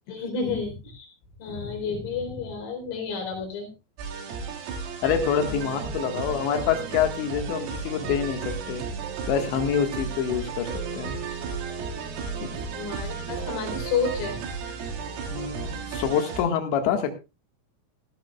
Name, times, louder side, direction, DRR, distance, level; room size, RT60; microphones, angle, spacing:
voice 1, 0.1-1.1 1.4-3.7 12.7-14.4, left 5 dB, 90° left, 2 dB, 6.6 m, -30 dB
sound 1, 4.0-16.4, right 5 dB, 85° right, 4.8 m, -35 dB
voice 2, 5.0-8.9 9.3-11.2 15.3-17.1, left 8 dB, 70° left, 5 dB, 3.8 m, -26 dB
sound 2, 5.0-16.1, right 5 dB, 60° right, 4.0 m, -40 dB
16.0 x 15.0 x 2.4 m, 0.27 s
omnidirectional pair, 5.7 m